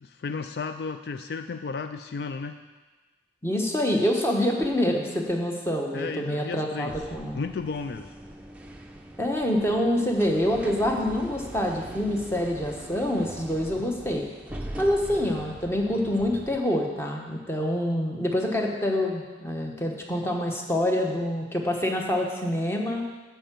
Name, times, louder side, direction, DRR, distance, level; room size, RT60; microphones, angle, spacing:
voice 1, 0.0-2.6 5.9-7.0 7.3-8.1, left 4 dB, 60° left, 8 dB, 0.3 m, -33 dB
voice 2, 3.4-7.4 9.2-14.3 14.8-23.1, left 1 dB, 15° left, 1 dB, 1.0 m, -26 dB
sound 1, 6.9-16.6, right 1 dB, 5° right, 0.6 m, -42 dB
10.5 x 4.5 x 7.4 m, 1.3 s
head